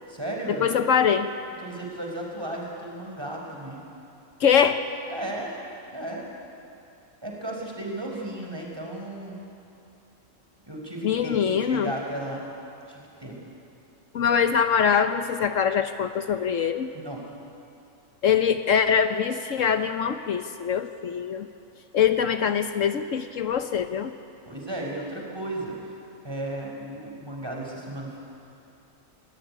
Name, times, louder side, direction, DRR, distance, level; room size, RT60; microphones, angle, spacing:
voice 1, 0.1-0.8 1.6-3.8 5.1-5.6 5.9-6.3 7.2-9.4 10.7-12.4 12.9-13.4 16.9-17.2 24.4-25.8 26.2-28.2, right 1 dB, 20° right, -1 dB, 5.0 m, -34 dB
voice 2, 0.6-1.3 4.4-4.8 11.0-11.9 14.1-16.9 18.2-21.5 21.9-24.1, left 7 dB, 70° left, 9 dB, 1.2 m, -23 dB
26.5 x 17.5 x 9.9 m, 2.7 s
omnidirectional pair, 1.4 m